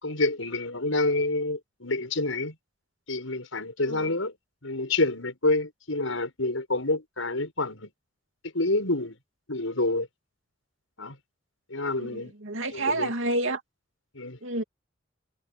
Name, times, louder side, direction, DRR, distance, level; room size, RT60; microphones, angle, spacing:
voice 1, 0.0-2.5 3.1-4.3 4.6-7.9 8.5-9.2 9.5-10.1 11.0-11.2 11.7-12.3 12.7-13.1 14.1-14.4, left 2 dB, 85° left, 6.7 m, -28 dB
voice 2, 12.0-13.6 14.4-14.6, right 2 dB, 75° right, 2.7 m, -29 dB
head